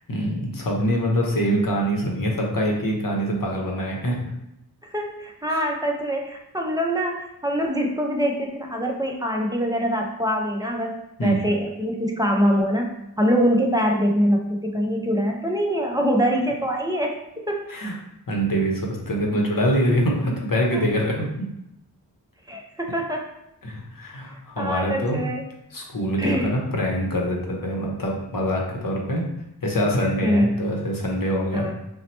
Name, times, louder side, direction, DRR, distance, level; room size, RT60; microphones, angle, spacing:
voice 1, 0.1-4.2 5.5-5.6 11.2-11.4 17.7-18.0 18.3-21.5 23.6-25.2 25.7-29.3 29.6-31.6, equal, 55° left, -1 dB, 0.8 m, -24 dB
voice 2, 4.9-17.2 17.5-17.6 22.5-23.3 24.6-25.5 26.2-26.7 30.2-30.5 31.5-31.7, equal, 10° right, 0 dB, 0.4 m, -24 dB
2.8 x 2.1 x 4.1 m, 0.84 s
wide cardioid pair, 55°, 40 cm